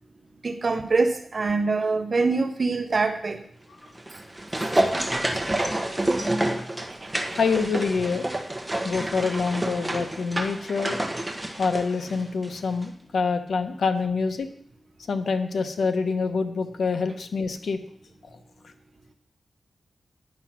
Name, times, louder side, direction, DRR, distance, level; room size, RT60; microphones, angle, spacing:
voice 1, 0.4-3.4 6.9-7.4, right 3 dB, 45° right, 7 dB, 0.8 m, -25 dB
sound 1, 3.9-12.6 12.8-12.9, right 1 dB, 10° right, 1.2 m, -28 dB
voice 2, 7.4-8.3 8.8-11.0 11.6-14.5 15.1-17.8, left 4 dB, 75° left, 7 dB, 0.9 m, -26 dB
9.9 x 6.0 x 6.0 m, 0.67 s
wide cardioid pair, 85°, 0 cm